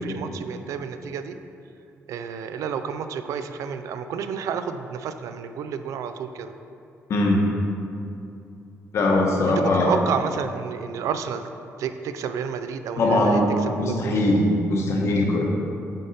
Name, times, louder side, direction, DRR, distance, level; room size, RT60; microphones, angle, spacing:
voice 1, 0.0-1.4 2.1-6.5 9.5-11.5 11.8-14.2, right 7 dB, 75° right, 9 dB, 0.3 m, -30 dB
voice 2, 7.1-7.5 8.9-10.0 13.0-14.4 14.7-15.4, left 1 dB, 55° left, 0 dB, 0.9 m, -21 dB
6.5 x 4.0 x 4.1 m, 2.6 s
cardioid pair, 145°, 6 cm